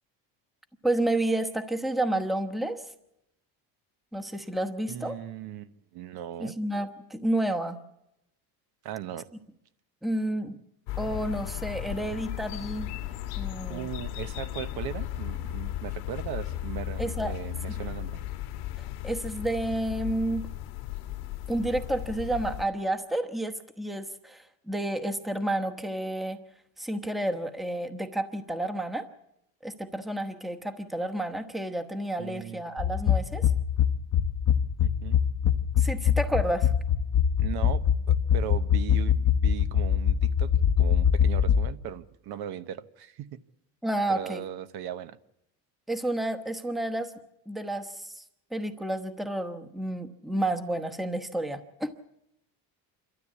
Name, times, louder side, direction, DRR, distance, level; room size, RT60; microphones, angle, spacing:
voice 1, 0.8-2.8 4.1-5.2 6.4-7.8 10.0-10.6 11.0-12.9 13.4-13.9 17.0-17.3 17.7-17.8 19.0-20.5 21.5-26.4 26.8-29.1 29.6-33.5 35.8-36.7 43.8-44.4 45.9-47.1 47.5-48.2 48.5-52.1, right 1 dB, ahead, 6 dB, 1.1 m, -30 dB
voice 2, 4.9-6.5 8.8-9.3 13.7-18.2 32.2-32.6 34.8-35.2 37.4-43.4 44.1-45.2, right 11 dB, 60° right, 12 dB, 1.0 m, -38 dB
sound 1, 10.9-22.6, left 13 dB, 85° left, 1.7 m, -35 dB
sound 2, 32.8-41.7, left 8 dB, 40° left, 0.9 m, -24 dB
27.5 x 13.0 x 8.4 m, 0.85 s
cardioid pair, 135°, 42 cm